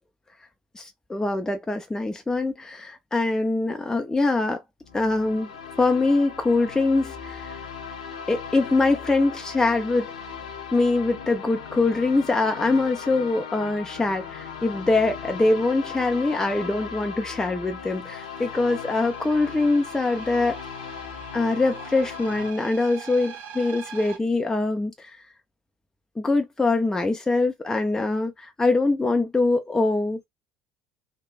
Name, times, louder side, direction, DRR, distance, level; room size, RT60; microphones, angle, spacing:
voice 1, 0.7-4.6 4.9-5.5 5.8-7.6 8.3-10.1 10.7-20.6 21.3-25.2 26.2-30.2, left 3 dB, 15° left, 0.5 m, -23 dB
sound 1, 4.8-22.5, left 6 dB, 80° left, 0.5 m, -38 dB
sound 2, 18.1-24.2, right 7 dB, 55° right, 0.6 m, -44 dB
3.2 x 2.1 x 2.4 m
figure-of-eight pair, 60°, 4 cm